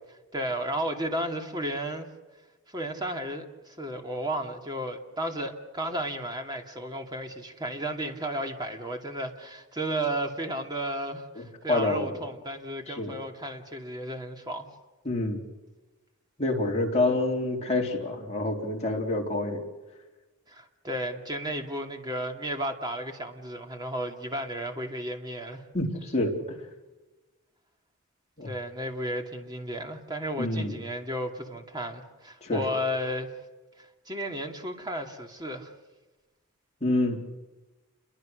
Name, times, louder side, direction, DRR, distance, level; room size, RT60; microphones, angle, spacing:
voice 1, 0.1-2.1 2.7-14.7 20.5-25.6 28.4-33.4 33.8-35.7, right 1 dB, 20° right, 3 dB, 2.6 m, -33 dB
voice 2, 11.4-12.1 12.9-13.2 15.0-15.4 16.4-19.6 25.7-26.3 28.4-28.5 30.4-30.8 32.4-32.6 36.8-37.2, left 2 dB, 30° left, 0 dB, 4.0 m, -27 dB
29.0 x 23.5 x 6.6 m, 1.2 s
head